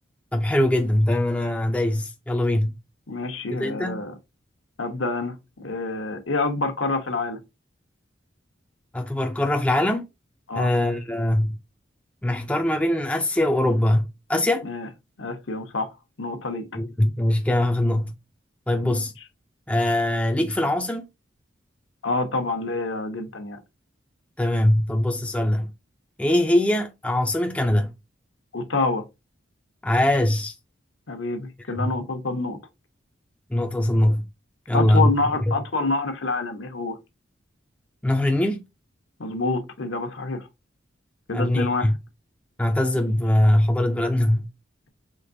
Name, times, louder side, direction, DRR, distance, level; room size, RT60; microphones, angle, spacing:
voice 1, 0.3-2.7 3.5-4.0 8.9-10.0 10.6-11.6 12.2-14.7 16.7-18.1 18.7-19.1 19.7-21.1 24.4-25.7 26.2-27.9 29.8-30.5 31.7-31.9 33.5-34.2 34.7-35.1 35.5-35.6 38.0-38.6 41.3-41.9 42.6-44.5, left 1 dB, 5° left, 0.4 m, -22 dB
voice 2, 3.1-4.1 4.8-7.4 10.5-10.7 14.6-14.9 15.2-15.9 16.2-16.7 18.8-19.0 22.0-23.6 28.5-29.0 31.1-32.6 34.7-37.0 39.2-40.5 41.3-41.9, left 3 dB, 85° left, 1.0 m, -27 dB
5.0 x 3.4 x 2.6 m
head